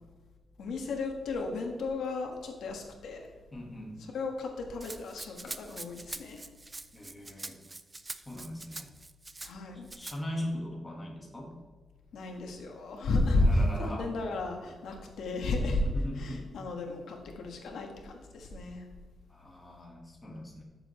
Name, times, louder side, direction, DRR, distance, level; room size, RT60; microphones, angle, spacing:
voice 1, 0.6-3.3 4.1-6.5 9.4-9.9 12.1-15.8 16.1-18.9, left 2 dB, 85° left, 2 dB, 1.5 m, -32 dB
voice 2, 3.5-4.0 6.9-7.6 8.2-8.9 10.0-11.5 13.4-14.1 15.8-16.5 19.3-20.6, left 1 dB, 15° left, -1 dB, 1.6 m, -40 dB
Rattle (instrument), 4.8-9.5 9.9-10.2, right 2 dB, 15° right, 0.4 m, -44 dB
12.5 x 6.9 x 3.2 m, 1.4 s
wide cardioid pair, 170°, 0 cm